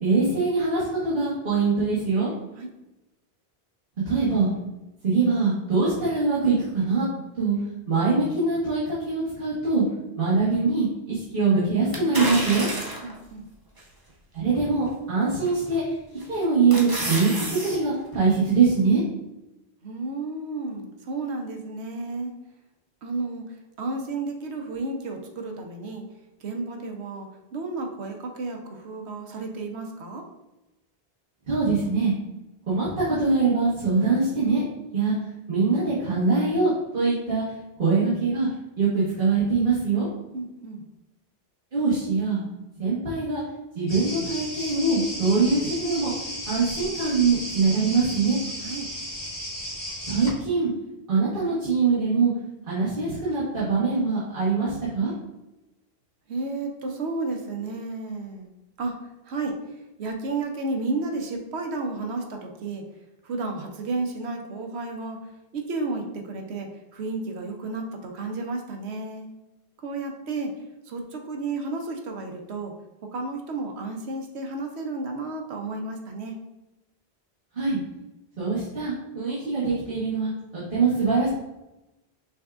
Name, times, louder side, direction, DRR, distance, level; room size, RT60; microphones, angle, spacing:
voice 1, 0.0-2.3 4.0-4.5 5.0-7.0 7.3-7.5 7.9-9.8 10.2-12.7 14.3-15.9 16.3-19.0 31.5-32.1 32.7-34.7 34.9-35.1 35.5-37.4 37.8-38.5 38.8-40.1 41.7-42.4 42.8-43.4 43.7-46.1 46.5-48.4 50.1-50.7 51.1-52.3 52.7-55.1 77.5-77.8 78.4-81.3, right 4 dB, 55° right, -10 dB, 1.5 m, -23 dB
sound 1, 11.9-13.2 13.8-13.9 15.4-15.8 16.2-17.8 18.1-18.2, right 1 dB, 25° right, 0.7 m, -30 dB
voice 2, 13.0-13.4 19.8-22.3 23.0-26.0 26.4-30.2 40.3-40.8 48.6-48.9 56.3-58.5 58.8-59.0 59.3-59.6 60.0-62.8 63.2-65.2 65.5-69.3 69.8-70.5 70.9-72.7 73.1-76.4, right 3 dB, 85° right, 3 dB, 1.0 m, -32 dB
sound 2, 43.9-50.3, equal, 40° left, 1.7 m, -34 dB
6.2 x 3.5 x 2.4 m, 0.97 s
omnidirectional pair, 1.1 m